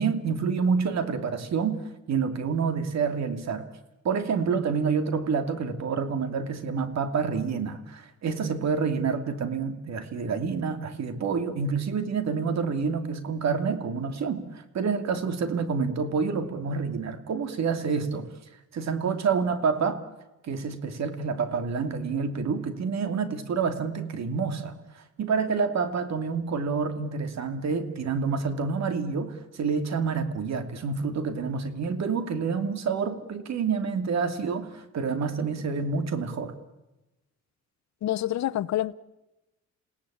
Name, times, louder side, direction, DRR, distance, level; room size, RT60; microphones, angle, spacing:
voice 1, 0.0-1.8 2.1-3.6 4.0-18.3 18.7-20.0 20.4-36.5, right 5 dB, 60° right, 2.7 m, -28 dB
voice 2, 38.0-38.9, left 13 dB, 65° left, 0.9 m, -27 dB
28.5 x 17.5 x 8.7 m
cardioid pair, 90°, 30 cm